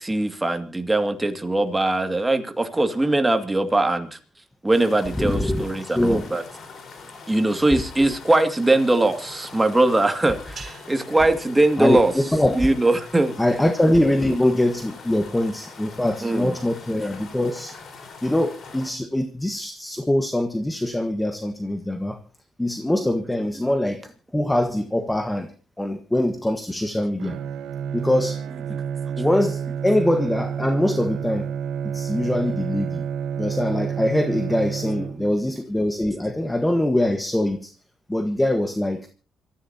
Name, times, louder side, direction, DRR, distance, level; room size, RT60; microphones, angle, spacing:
voice 1, 0.0-4.2 4.6-6.4 7.3-12.1 12.5-13.4 16.2-16.5 29.1-29.2 35.0-35.1, right 2 dB, 15° right, 2.3 m, -21 dB
sound 1, 4.7-18.9, left 4 dB, 55° left, 4.6 m, -43 dB
voice 2, 5.2-5.6 5.9-6.2 7.7-7.8 11.8-12.7 13.4-17.7 18.2-22.2 22.6-25.5 25.8-27.4 27.9-28.4 29.2-31.5 31.9-33.1 33.4-37.7 38.1-39.1, left 1 dB, 10° left, 1.4 m, -23 dB
sound 2, 10.6-13.0, right 5 dB, 45° right, 7.3 m, -47 dB
Bowed string instrument, 27.2-35.5, right 7 dB, 85° right, 1.2 m, -29 dB
26.5 x 14.5 x 2.9 m
cardioid pair, 90°, 0 cm